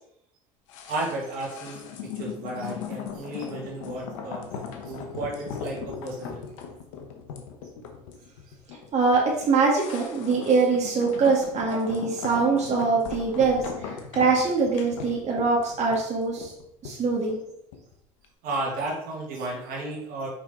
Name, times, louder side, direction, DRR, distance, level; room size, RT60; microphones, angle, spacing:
sound 1, 0.7-17.9 18.2-18.3, left 6 dB, 80° left, 1.0 m, -38 dB
voice 1, 0.9-4.4 4.8-6.5 18.4-20.3, right 2 dB, 65° right, -1 dB, 2.0 m, -33 dB
voice 2, 8.9-16.5 16.8-17.4, right 4 dB, 45° right, -2 dB, 1.8 m, -23 dB
6.0 x 5.3 x 3.8 m, 0.76 s
hypercardioid pair, 70°, 16 cm